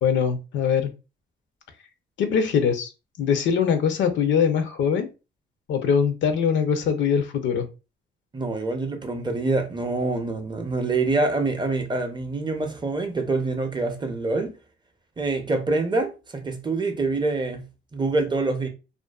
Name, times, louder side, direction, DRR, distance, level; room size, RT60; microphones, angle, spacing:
voice 1, 0.0-0.9 2.2-2.9 3.2-5.1 5.7-7.7, left 7 dB, 70° left, 0.5 m, -22 dB
voice 2, 8.3-14.5 15.2-17.6 17.9-18.7, right 3 dB, 25° right, 0.5 m, -25 dB
2.4 x 2.2 x 2.2 m
cardioid pair, 90°, 20 cm